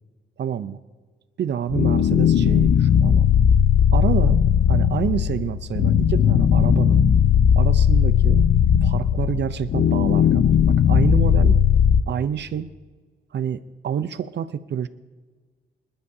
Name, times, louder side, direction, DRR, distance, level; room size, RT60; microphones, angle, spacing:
voice 1, 0.4-0.8 1.4-3.3 3.9-4.4 4.7-7.0 7.5-8.4 8.8-11.6 12.1-12.7 13.3-14.9, right 8 dB, 70° right, 13 dB, 0.6 m, -28 dB
sound 1, 1.7-12.0, left 8 dB, 65° left, 0.6 m, -17 dB
25.5 x 11.5 x 2.7 m, 1.4 s
wide cardioid pair, 125°, 19 cm